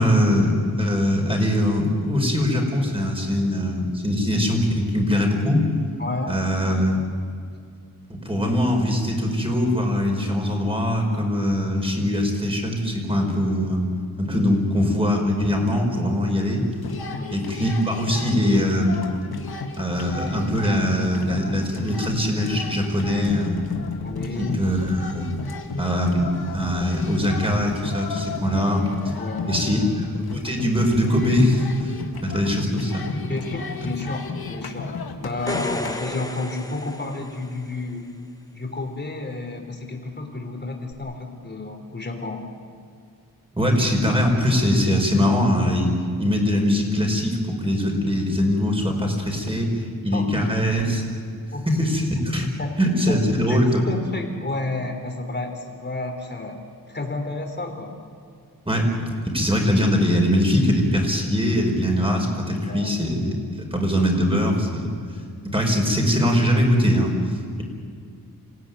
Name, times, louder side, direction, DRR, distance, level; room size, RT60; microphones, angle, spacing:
voice 1, 0.0-5.7 6.3-7.0 8.2-13.9 14.2-16.6 17.3-19.0 19.8-23.6 24.6-25.3 25.8-28.9 29.5-29.8 30.2-31.9 32.2-33.2 43.5-45.9 46.2-49.7 50.0-51.0 51.7-52.5 52.8-53.8 58.7-63.3 63.6-64.9 65.4-67.6, left 1 dB, 15° right, 1 dB, 5.3 m, -22 dB
voice 2, 6.0-6.4 17.1-17.4 24.0-24.6 29.2-29.7 33.3-38.1 38.5-42.4 50.1-50.6 51.5-51.9 52.4-52.7 53.1-53.2 53.5-56.6 56.9-57.9 62.7-63.0, left 2 dB, 30° left, 3 dB, 3.8 m, -31 dB
sound 1, 16.6-36.0, left 4 dB, 85° left, 2.0 m, -33 dB
sound 2, 35.3-37.8 40.9-41.0, left 1 dB, 10° left, 1.4 m, -33 dB
27.0 x 17.0 x 9.7 m, 2.3 s
wide cardioid pair, 100°, 36 cm